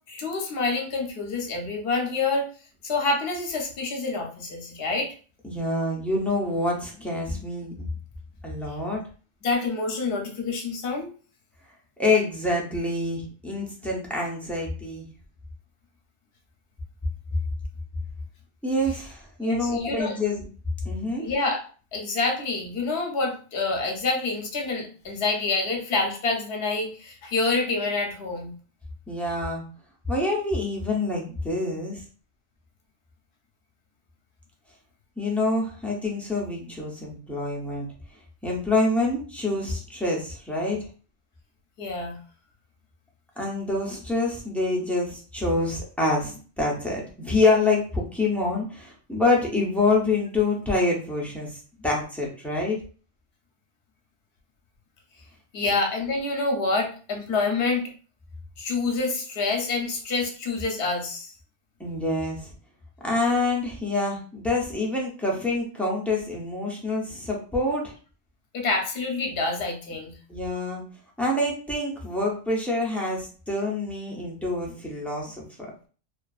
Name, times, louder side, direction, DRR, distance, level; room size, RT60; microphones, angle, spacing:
voice 1, 0.1-2.5 2.8-5.1 9.4-11.1 19.4-20.2 21.2-21.6 21.9-28.5 41.8-42.2 55.5-57.9 58.6-61.3 68.5-70.1, left 3 dB, 70° left, 2 dB, 0.9 m, -27 dB
voice 2, 5.4-7.7 8.4-9.0 12.0-15.1 18.6-20.5 20.8-21.2 29.1-29.6 30.1-32.0 35.2-37.9 38.4-40.8 43.4-52.8 61.8-62.5 63.0-67.9 70.3-70.8 71.2-75.4, left 2 dB, ahead, -4 dB, 0.4 m, -26 dB
2.5 x 2.3 x 2.3 m, 0.39 s
omnidirectional pair, 1.1 m